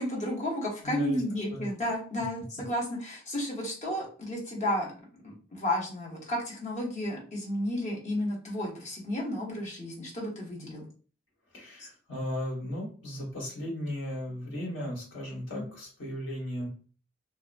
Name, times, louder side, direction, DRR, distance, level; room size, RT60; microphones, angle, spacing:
voice 1, 0.0-4.9 5.2-10.9 11.8-11.9 15.5-15.7, left 1 dB, 40° left, -3 dB, 0.9 m, -32 dB
voice 2, 0.8-1.2 1.5-1.6 11.5-16.7, left 1 dB, 70° left, -3 dB, 1.3 m, -36 dB
2.8 x 2.2 x 2.5 m, 0.40 s
head